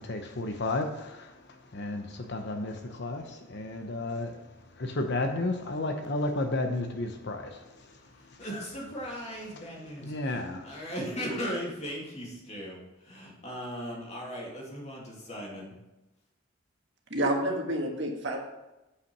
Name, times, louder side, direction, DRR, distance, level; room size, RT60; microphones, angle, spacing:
voice 1, 0.0-8.5 10.0-10.8, left 2 dB, 50° left, 5 dB, 0.8 m, -33 dB
voice 2, 8.4-12.8 13.0-15.7, equal, 30° left, -3 dB, 2.3 m, -37 dB
voice 3, 17.1-18.4, right 1 dB, 55° right, 1 dB, 1.6 m, -29 dB
8.2 x 5.8 x 5.9 m, 0.99 s
head